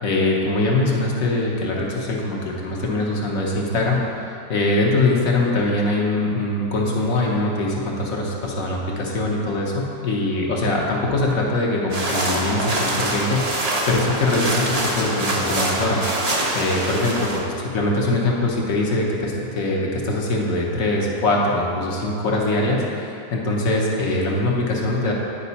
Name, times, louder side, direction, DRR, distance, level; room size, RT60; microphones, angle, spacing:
voice 1, 0.0-25.1, left 2 dB, 60° left, -2 dB, 1.4 m, -22 dB
sound 1, 11.9-17.4, right 1 dB, 35° right, 0.6 m, -24 dB
9.7 x 5.3 x 4.1 m, 2.8 s
omnidirectional pair, 1.7 m